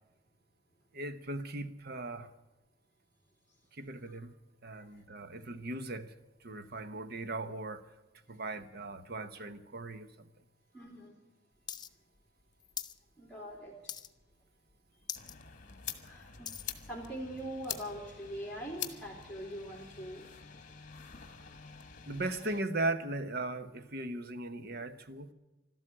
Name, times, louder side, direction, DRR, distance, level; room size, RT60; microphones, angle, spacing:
voice 1, 0.9-2.3 3.7-4.3 4.6-6.1 6.4-7.9 8.3-10.3 22.1-25.3, right 2 dB, 55° right, 1.0 m, -38 dB
voice 2, 10.7-11.2 13.2-13.9 16.0-16.5 16.9-20.3, right 1 dB, 5° left, 3.0 m, -42 dB
sound 1, 11.7-11.9 12.1-13.0 13.3-13.6 13.9-14.3 14.7-14.8 15.0-15.4 15.8-16.7 17.4-17.5, left 8 dB, 25° left, 0.7 m, -42 dB
sound 2, 15.1-22.6, left 9 dB, 45° left, 1.4 m, -46 dB
13.0 x 12.5 x 8.7 m
head